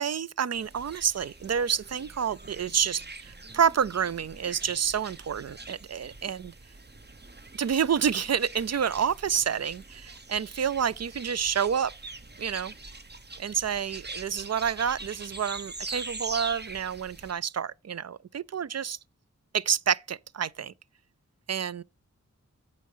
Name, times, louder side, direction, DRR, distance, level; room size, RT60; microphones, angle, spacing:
voice 1, 0.0-6.5 7.6-11.9 12.4-12.7 13.4-19.0 19.5-20.7 21.5-21.8, right 7 dB, 55° right, 0.5 m, -28 dB
sound 1, 0.5-17.3, right 3 dB, 35° right, 0.9 m, -43 dB
8.2 x 5.2 x 5.5 m
cardioid pair, 40°, 31 cm